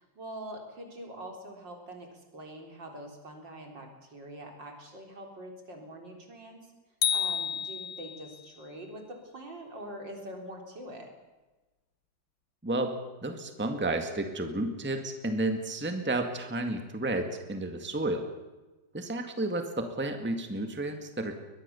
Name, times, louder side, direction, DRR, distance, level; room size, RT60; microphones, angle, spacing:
voice 1, 0.0-6.7 7.1-11.1, right 1 dB, 65° right, 3 dB, 4.5 m, -44 dB
sound 1, 7.0-8.4, left 7 dB, 70° left, 1.8 m, -30 dB
voice 2, 12.6-13.0 13.2-18.3 18.9-21.4, right 2 dB, 5° right, 5 dB, 1.8 m, -31 dB
22.5 x 20.5 x 7.0 m, 1.2 s
omnidirectional pair, 2.1 m